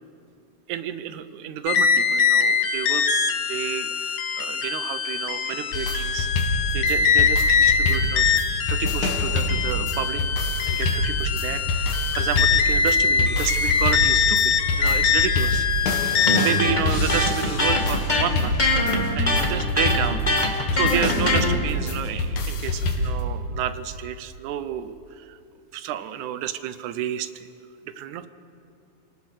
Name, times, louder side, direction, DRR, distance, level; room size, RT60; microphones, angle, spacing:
voice 1, 0.7-3.0 3.5-6.3 6.7-10.2 10.7-18.7 19.2-25.4 25.7-27.5 27.8-28.3, right 10 dB, 80° right, 12 dB, 2.2 m, -31 dB
sound 1, 1.7-16.6, left 6 dB, 60° left, 1.7 m, -23 dB
sound 2, 5.7-23.2, left 2 dB, 75° left, 3.4 m, -26 dB
Electric guitar, 16.3-21.5, left 2 dB, 20° left, 1.3 m, -23 dB
28.5 x 18.0 x 6.5 m, 2.5 s
omnidirectional pair, 3.5 m